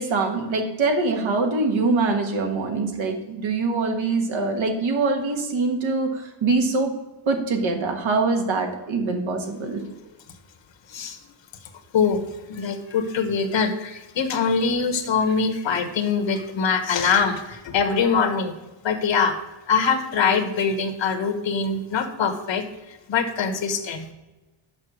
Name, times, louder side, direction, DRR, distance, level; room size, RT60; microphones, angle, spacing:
voice 1, 0.0-6.9 7.2-9.8, right 3 dB, 80° right, 4 dB, 1.6 m, -24 dB
voice 2, 11.9-18.6 18.8-19.4 19.7-22.6 22.9-24.1, left 5 dB, 70° left, 8 dB, 1.1 m, -23 dB
6.6 x 5.7 x 6.2 m, 1.1 s
wide cardioid pair, 115°, 46 cm